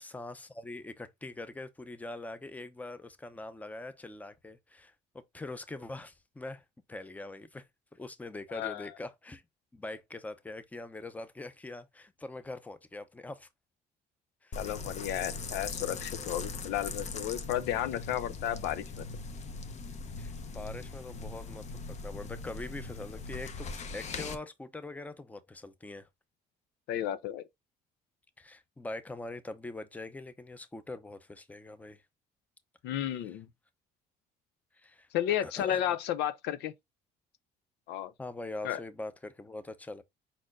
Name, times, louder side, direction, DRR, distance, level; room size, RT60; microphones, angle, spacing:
voice 1, 0.0-7.7 7.9-9.4 9.7-13.5 14.4-14.6 20.2-26.1 28.4-32.0 34.7-35.8 38.2-40.0, left 2 dB, 10° left, 0.6 m, -43 dB
voice 2, 8.5-8.9 14.6-19.0 26.9-27.5 32.8-33.5 35.1-36.7 37.9-38.1 38.6-38.8, left 11 dB, 85° left, 0.6 m, -33 dB
sound 1, 14.5-24.4, left 4 dB, 45° left, 0.9 m, -40 dB
5.0 x 4.2 x 2.5 m
cardioid pair, 110°, 17 cm